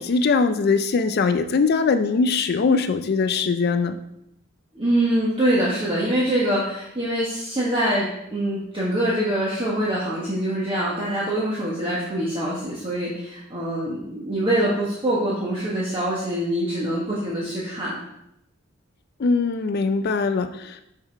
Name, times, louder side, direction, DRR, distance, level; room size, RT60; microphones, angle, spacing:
voice 1, 0.0-4.0 19.2-20.8, left 4 dB, 50° left, 10 dB, 0.4 m, -21 dB
voice 2, 4.7-18.0, right 1 dB, 25° right, -6 dB, 1.3 m, -24 dB
5.7 x 5.6 x 4.5 m, 0.80 s
head